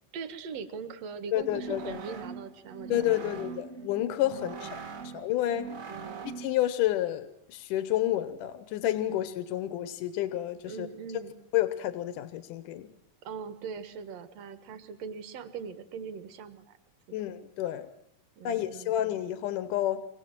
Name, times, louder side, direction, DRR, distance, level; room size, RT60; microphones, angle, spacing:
voice 1, 0.1-3.6 4.3-4.8 5.9-6.3 10.6-11.3 13.2-16.8 17.1-17.2 18.4-19.0, right 6 dB, 60° right, 10 dB, 2.5 m, -41 dB
voice 2, 1.3-2.0 2.9-4.7 5.1-5.7 6.4-10.9 11.5-12.9 17.1-17.9 18.4-20.1, left 13 dB, 80° left, 11 dB, 2.6 m, -30 dB
sound 1, 1.4-6.6, right 5 dB, 35° right, 1.5 m, -42 dB
25.5 x 20.5 x 7.7 m, 0.77 s
omnidirectional pair, 3.7 m